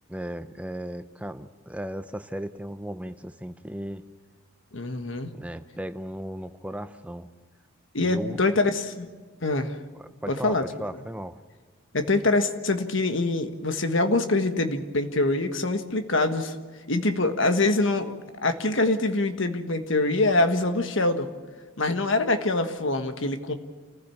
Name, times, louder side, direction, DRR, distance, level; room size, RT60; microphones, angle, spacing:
voice 1, 0.1-4.0 5.4-7.3 8.0-8.4 10.0-11.4, equal, 5° right, 10 dB, 0.6 m, -36 dB
voice 2, 4.7-5.3 7.9-9.1 9.4-9.8 10.3-10.6 11.9-16.5 16.9-18.1 18.4-21.3 21.8-23.5, left 2 dB, 65° left, 7 dB, 1.5 m, -24 dB
28.0 x 15.0 x 7.1 m, 1.5 s
head